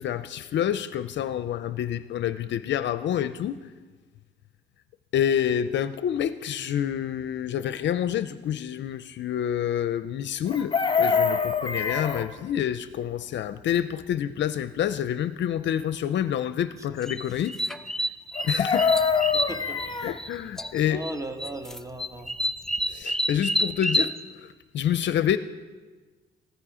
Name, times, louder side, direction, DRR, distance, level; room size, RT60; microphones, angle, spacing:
voice 1, 0.0-3.6 5.1-17.6 18.4-18.9 20.0-21.0 22.9-24.1 24.7-25.4, left 10 dB, 65° left, 13 dB, 0.6 m, -27 dB
Chicken rooster, 10.5-12.3 18.4-20.2 22.4-22.5 22.8-23.0, left 6 dB, 25° left, 1.2 m, -24 dB
sound 1, 17.0-20.3 20.6-21.1 21.4-24.1, left 1 dB, ahead, 0.7 m, -28 dB
voice 2, 19.3-20.0 20.9-22.3, right 1 dB, 15° right, 6 dB, 1.6 m, -37 dB
16.0 x 13.5 x 5.0 m, 1.4 s
cardioid pair, 90°, 20 cm